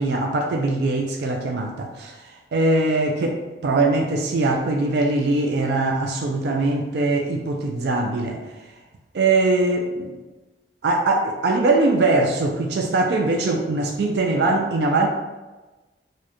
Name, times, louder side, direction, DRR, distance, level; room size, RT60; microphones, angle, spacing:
voice 1, 0.0-8.4 9.1-10.1 10.8-15.1, right 2 dB, 70° right, 2 dB, 0.4 m, -21 dB
4.3 x 2.2 x 3.0 m, 1.2 s
head